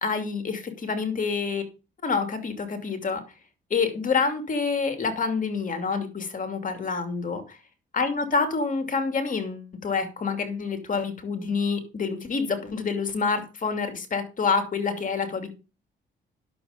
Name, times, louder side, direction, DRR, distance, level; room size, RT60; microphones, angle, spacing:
voice 1, 0.0-1.6 2.0-3.2 3.7-7.6 7.9-15.5, left 5 dB, 40° left, 2.7 m, -27 dB
11.0 x 6.9 x 5.1 m
cardioid pair, 90°, 20 cm